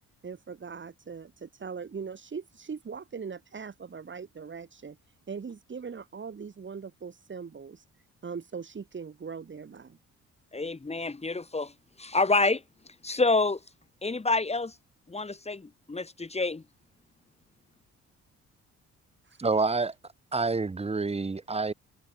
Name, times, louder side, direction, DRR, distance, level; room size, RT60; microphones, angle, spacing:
voice 1, 0.2-5.0 5.3-7.8 8.2-10.0 19.2-19.4, right 6 dB, 40° right, 6.1 m, -40 dB
voice 2, 10.5-11.7 12.0-12.6 13.0-13.6 14.0-14.7 15.1-16.6, left 3 dB, 20° left, 2.9 m, -27 dB
voice 3, 19.4-19.9 20.3-21.7, right 3 dB, 20° right, 1.6 m, -27 dB
cardioid pair, 90°, 30 cm